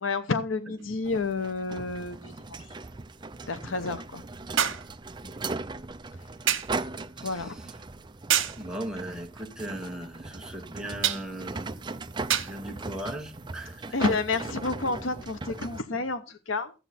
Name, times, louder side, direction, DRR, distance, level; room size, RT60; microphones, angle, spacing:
voice 1, 0.0-2.3 3.5-4.2 7.2-7.6 13.9-16.7, left 3 dB, 90° left, 0.9 m, -30 dB
sound 1, 0.8-0.9 4.6-4.9 6.5-6.8 8.3-8.6 11.0-11.3 12.3-12.6 13.6-13.8, right 10 dB, 85° right, 1.3 m, -26 dB
sound 2, 1.0-15.8, right 3 dB, 25° right, 0.5 m, -38 dB
voice 2, 3.6-4.0 5.2-5.6 7.2-7.7 8.6-11.7 12.4-14.0, right 1 dB, 5° right, 1.4 m, -39 dB
13.5 x 8.0 x 4.2 m
head